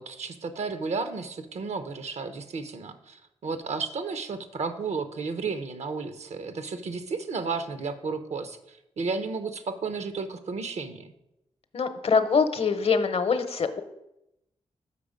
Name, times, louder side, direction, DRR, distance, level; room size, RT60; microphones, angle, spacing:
voice 1, 0.0-11.1, right 4 dB, 65° right, 10 dB, 0.7 m, -33 dB
voice 2, 11.7-13.8, left 5 dB, 55° left, 10 dB, 0.8 m, -24 dB
6.8 x 5.0 x 5.0 m, 0.87 s
cardioid pair, 60°, 12 cm